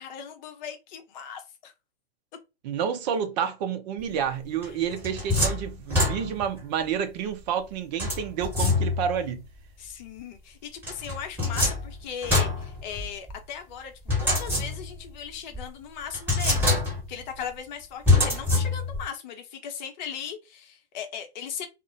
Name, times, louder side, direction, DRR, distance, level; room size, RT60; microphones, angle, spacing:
voice 1, 0.0-1.7 4.7-4.8 9.8-13.9 14.2-16.8 17.1-21.7, left 7 dB, 45° left, 0.7 m, -38 dB
voice 2, 2.6-9.4, right 8 dB, 45° right, 0.6 m, -29 dB
sound 1, 4.6-6.6 8.0-9.2 10.8-13.3 14.1-15.1 15.5-15.6 16.1-17.2 18.0-19.1, left 2 dB, 5° right, 1.4 m, -25 dB
2.4 x 2.1 x 2.5 m
hypercardioid pair, 110°, 31 cm